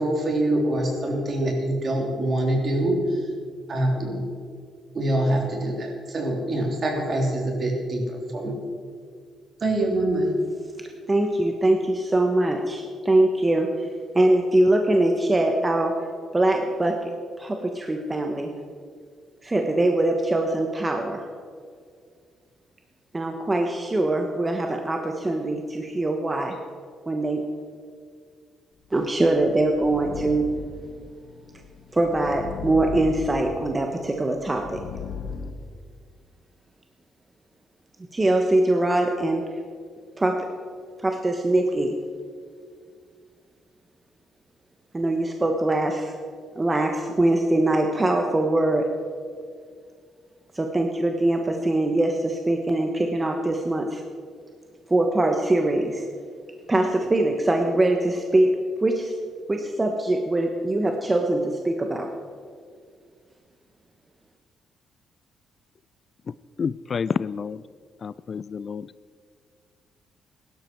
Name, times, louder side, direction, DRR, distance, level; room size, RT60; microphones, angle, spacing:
voice 1, 0.0-3.2 3.7-4.2 4.9-8.6 9.6-10.4, right 1 dB, 45° right, 0 dB, 3.5 m, -25 dB
voice 2, 11.1-16.1 16.3-18.5 19.4-21.3 23.1-26.6 27.1-27.5 28.9-30.5 31.9-34.8 38.1-39.6 40.2-40.5 41.0-42.0 44.9-46.1 46.5-48.9 50.5-54.0 54.9-56.1 56.7-58.5 58.8-59.1 59.5-62.1, right 1 dB, 20° right, 3 dB, 1.2 m, -23 dB
sound 1, 29.1-35.5, left 6 dB, 60° left, 1.2 m, -38 dB
voice 3, 66.6-67.6 68.0-68.9, left 6 dB, 45° left, 18 dB, 0.3 m, -29 dB
16.5 x 12.0 x 4.6 m, 2.1 s
cardioid pair, 90°, 0 cm